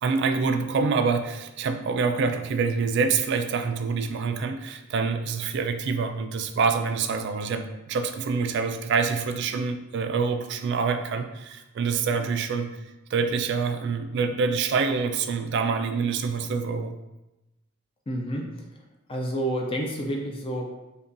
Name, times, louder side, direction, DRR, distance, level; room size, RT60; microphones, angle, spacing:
voice 1, 0.0-12.7 13.1-16.9, right 5 dB, 55° right, 8 dB, 0.3 m, -26 dB
voice 2, 18.1-18.5 19.1-20.7, right 1 dB, 25° left, 1 dB, 0.4 m, -29 dB
5.1 x 2.3 x 2.5 m, 0.95 s
head